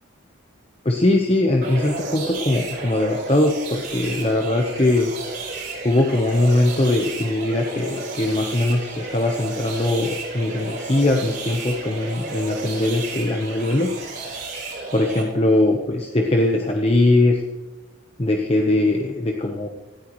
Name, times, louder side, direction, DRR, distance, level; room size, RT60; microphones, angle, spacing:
voice 1, 0.8-5.1 5.8-13.9 14.9-17.4 18.2-19.7, left 1 dB, 30° left, 2 dB, 1.0 m, -21 dB
sound 1, 1.6-15.2, right 3 dB, 55° right, 4.8 m, -32 dB
18.0 x 14.0 x 3.2 m, 1.2 s
head